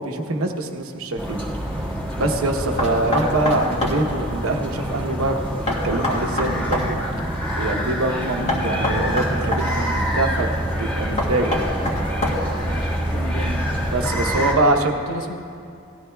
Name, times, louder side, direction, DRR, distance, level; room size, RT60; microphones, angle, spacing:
voice 1, 0.0-1.5 2.2-7.0 7.6-10.5 10.8-11.7 13.9-15.0, right 2 dB, 90° right, 4 dB, 0.9 m, -24 dB
sound 1, 1.2-14.5, equal, 10° left, 1.6 m, -26 dB
Knock, 2.8-4.0 5.7-6.9 8.5-9.7 11.2-12.6, left 2 dB, 35° left, 1.6 m, -24 dB
voice 2, 12.6-13.9 14.4-15.4, left 1 dB, 70° left, 3 dB, 1.1 m, -33 dB
17.5 x 13.0 x 2.3 m, 2.5 s
head